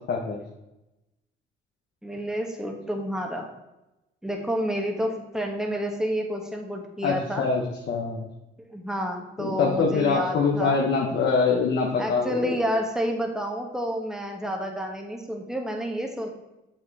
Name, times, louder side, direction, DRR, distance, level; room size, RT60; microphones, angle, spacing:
voice 1, 0.1-0.4 7.0-8.3 9.4-12.6, left 4 dB, 60° left, -1 dB, 1.0 m, -24 dB
voice 2, 2.0-3.5 4.2-7.4 8.7-10.8 12.0-16.3, equal, 5° right, 2 dB, 1.3 m, -29 dB
6.9 x 5.6 x 4.1 m, 0.96 s
cardioid pair, 90°, 20 cm